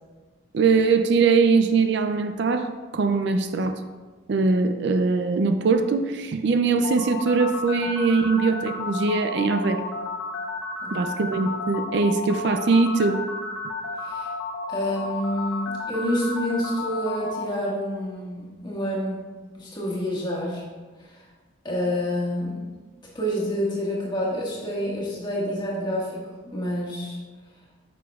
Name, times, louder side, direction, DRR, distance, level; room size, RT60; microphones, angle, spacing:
voice 1, 0.5-3.8 4.3-9.8 10.9-13.2, right 4 dB, 60° right, 8 dB, 0.4 m, -22 dB
sound 1, 6.8-17.4, left 4 dB, 70° left, 0.9 m, -32 dB
voice 2, 10.8-11.1 14.0-14.3 14.7-19.2 19.6-20.6 21.6-22.6 23.1-27.2, equal, 20° left, -5 dB, 1.6 m, -28 dB
9.3 x 6.0 x 2.4 m, 1.4 s
head